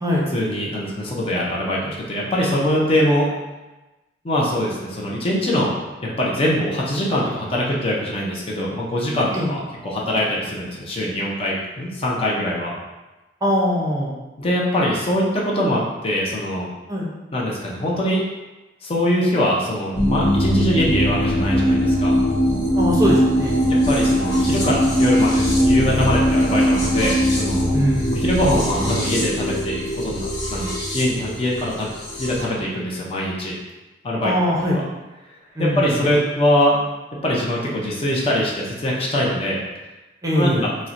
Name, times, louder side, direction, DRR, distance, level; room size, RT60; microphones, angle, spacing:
voice 1, 0.3-3.3 4.2-5.7 6.2-12.8 14.4-16.7 17.3-18.2 18.8-22.1 23.7-27.8 28.1-31.9 32.2-33.5 34.0-34.3 35.6-36.8 37.2-39.6 40.3-40.7, left 1 dB, 30° left, -4 dB, 0.5 m, -22 dB
voice 2, 13.4-14.1 16.9-17.1 22.8-23.5 27.7-28.2 34.2-34.8 35.6-36.0 40.2-40.6, equal, 20° right, -4 dB, 0.6 m, -21 dB
sound 1, 19.9-32.4, equal, 75° left, 1.0 m, -20 dB
4.2 x 2.0 x 2.5 m, 1.1 s
head